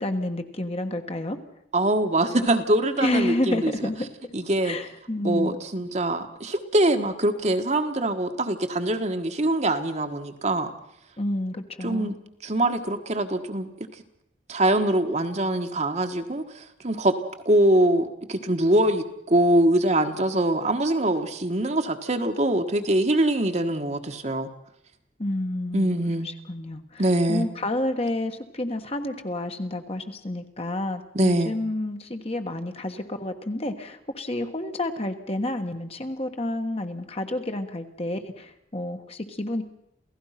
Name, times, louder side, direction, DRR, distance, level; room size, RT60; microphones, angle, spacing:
voice 1, 0.0-1.4 3.0-4.1 4.6-5.6 11.2-12.2 25.2-26.0 26.2-39.6, left 1 dB, 30° left, 6 dB, 1.4 m, -29 dB
voice 2, 1.7-3.7 4.3-4.8 5.2-10.7 11.8-12.2 12.4-13.7 14.5-17.2 17.4-24.5 25.7-26.3 27.0-27.5 31.1-31.5, right 1 dB, 35° right, 6 dB, 1.4 m, -23 dB
28.0 x 16.5 x 5.8 m, 0.80 s
head